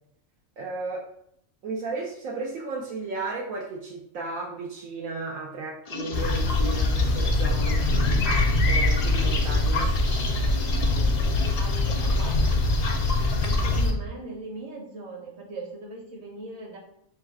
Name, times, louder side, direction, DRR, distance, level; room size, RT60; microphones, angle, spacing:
voice 1, 0.6-1.1 1.6-8.3 8.7-9.9, right 3 dB, 75° right, -2 dB, 1.1 m, -34 dB
sound 1, 5.8-13.8, left 3 dB, 90° left, 0.3 m, -36 dB
sound 2, 6.1-13.9, left 2 dB, 55° left, 0.7 m, -23 dB
voice 2, 10.4-11.1 11.6-12.5 13.4-16.8, right 2 dB, 55° right, -1 dB, 1.3 m, -40 dB
4.4 x 2.3 x 4.6 m, 0.71 s
omnidirectional pair, 1.4 m